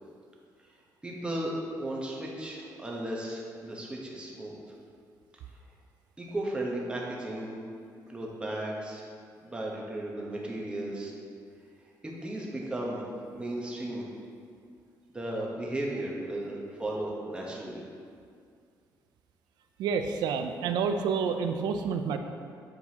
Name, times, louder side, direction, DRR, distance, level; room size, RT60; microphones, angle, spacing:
voice 1, 1.0-4.5 6.2-7.6 8.1-9.0 9.4-11.1 12.0-13.0 13.3-14.1 15.1-17.8, right 1 dB, 15° right, -3 dB, 0.9 m, -35 dB
voice 2, 19.8-22.2, right 6 dB, 85° right, 6 dB, 0.4 m, -29 dB
7.6 x 4.5 x 2.8 m, 2.3 s
cardioid pair, 130°, 7 cm